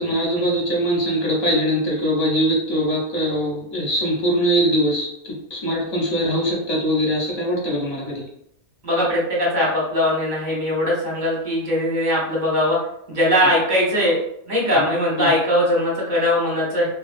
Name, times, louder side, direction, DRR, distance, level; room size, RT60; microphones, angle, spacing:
voice 1, 0.0-8.2 14.7-14.8 15.2-15.3, equal, 35° left, -5 dB, 0.6 m, -22 dB
voice 2, 8.8-12.8 13.1-14.2 14.5-16.9, left 1 dB, 40° right, -4 dB, 0.9 m, -20 dB
2.5 x 2.3 x 2.4 m, 0.74 s
omnidirectional pair, 1.5 m